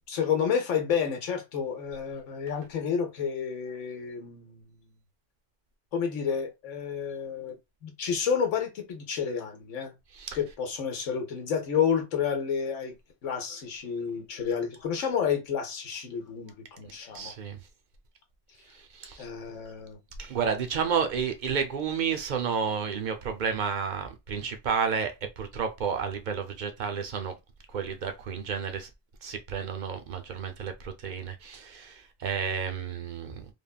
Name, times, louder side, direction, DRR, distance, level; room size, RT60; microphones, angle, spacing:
voice 1, 0.1-4.8 5.9-7.6 7.8-9.9 10.3-12.9 13.2-17.3 19.2-20.0, left 7 dB, 80° left, 1.0 m, -30 dB
voice 2, 17.1-17.6 18.7-19.2 20.2-27.3 27.7-28.9 29.2-33.5, right 6 dB, 55° right, 0.6 m, -31 dB
3.5 x 2.2 x 2.2 m
omnidirectional pair, 1.2 m